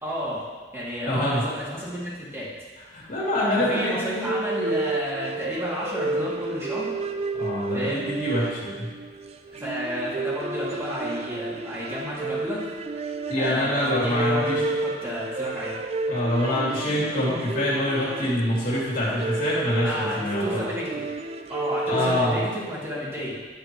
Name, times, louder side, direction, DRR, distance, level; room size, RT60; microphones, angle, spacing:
voice 1, 0.0-0.5 0.7-2.5 3.7-6.9 7.7-8.1 9.5-12.8 13.4-15.8 19.8-21.0 21.5-23.4, equal, 15° right, -8 dB, 2.8 m, -31 dB
voice 2, 1.1-1.4 2.9-4.3 7.3-8.9 13.3-14.6 16.1-20.6 21.9-22.4, left 1 dB, 55° left, -7 dB, 3.1 m, -25 dB
sound 1, 4.2-22.7, right 3 dB, 35° right, 0.4 m, -31 dB
10.5 x 8.4 x 3.2 m, 1.4 s
head